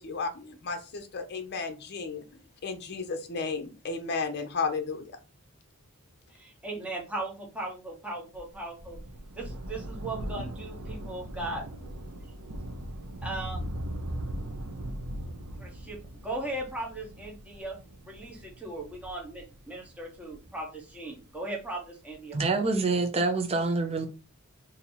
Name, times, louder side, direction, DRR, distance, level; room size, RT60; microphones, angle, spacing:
voice 1, 0.0-5.2, left 4 dB, 50° left, 0.6 m, -34 dB
voice 2, 6.3-9.0 9.3-11.6 13.2-13.7 15.5-17.8 18.1-22.4, right 2 dB, 5° right, 0.9 m, -38 dB
Thunder, 8.3-21.2 22.1-22.2, right 1 dB, 85° right, 0.6 m, -39 dB
voice 3, 22.3-24.1, right 3 dB, 25° right, 0.5 m, -26 dB
2.7 x 2.7 x 4.2 m
head